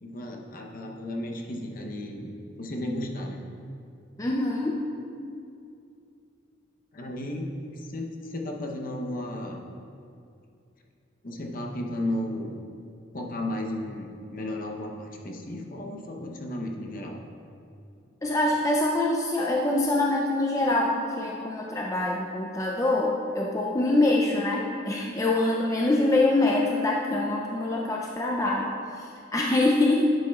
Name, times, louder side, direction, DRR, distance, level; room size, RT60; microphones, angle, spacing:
voice 1, 0.0-3.4 6.9-9.6 11.2-12.6 13.1-17.2, left 1 dB, 45° left, 1 dB, 0.8 m, -34 dB
voice 2, 4.2-4.9 18.2-30.1, left 2 dB, 15° left, -2 dB, 0.4 m, -25 dB
11.0 x 7.7 x 2.3 m, 2.5 s
head